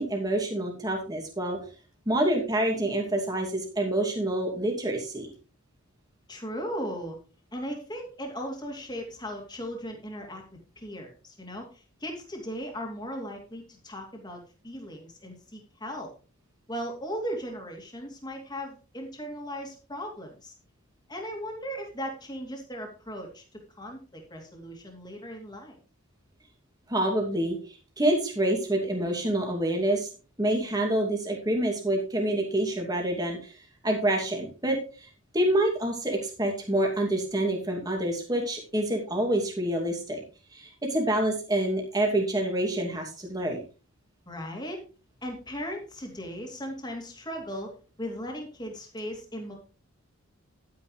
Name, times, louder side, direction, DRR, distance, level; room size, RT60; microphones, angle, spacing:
voice 1, 0.0-1.6 2.1-5.3 26.9-30.1 30.4-33.5 33.8-35.1 35.3-40.2 40.5-43.6, right 1 dB, 15° right, 1 dB, 2.5 m, -27 dB
voice 2, 6.3-7.2 7.5-10.4 10.8-16.1 16.7-20.5 21.1-25.8 44.3-44.8 45.2-49.5, equal, 20° left, 2 dB, 2.6 m, -37 dB
11.5 x 9.6 x 3.2 m, 0.36 s
head